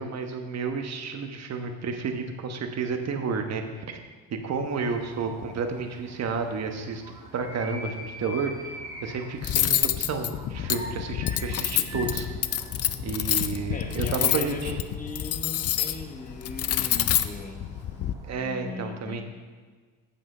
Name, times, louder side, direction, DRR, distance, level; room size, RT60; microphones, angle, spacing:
voice 1, 0.0-4.0 4.3-7.0 7.3-12.3 13.0-14.8 18.3-19.2, right 4 dB, 45° right, 5 dB, 1.3 m, -31 dB
sound 1, 4.5-18.5, equal, 10° right, 2.1 m, -45 dB
Cutlery silverware, 9.4-18.1, left 11 dB, 40° left, 0.5 m, -27 dB
voice 2, 13.7-17.6 18.3-19.2, left 3 dB, 20° left, 4 dB, 1.2 m, -39 dB
9.2 x 7.5 x 5.1 m, 1.5 s
cardioid pair, 110°, 38 cm